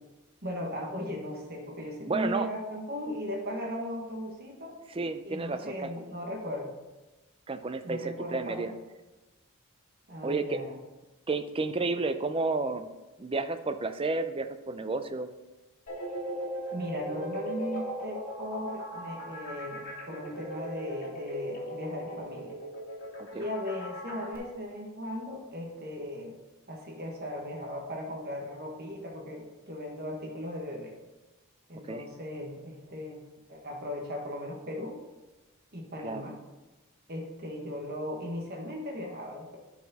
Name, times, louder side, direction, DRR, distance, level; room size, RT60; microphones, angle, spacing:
voice 1, 0.4-4.7 5.2-6.7 7.8-8.7 10.1-10.8 16.7-22.6 23.3-26.3 26.7-30.9 31.7-33.2 33.5-35.0 35.7-36.4 37.1-39.6, left 1 dB, 45° right, -1 dB, 1.4 m, -37 dB
voice 2, 2.1-2.5 5.0-5.9 7.5-8.7 10.2-10.6 11.3-12.9 13.2-15.3 23.2-23.4 31.8-32.0 36.0-36.3, right 3 dB, 25° right, 9 dB, 0.4 m, -31 dB
sound 1, 15.9-24.4, right 1 dB, 40° left, 2.3 m, -38 dB
11.5 x 4.9 x 4.1 m, 1.1 s
head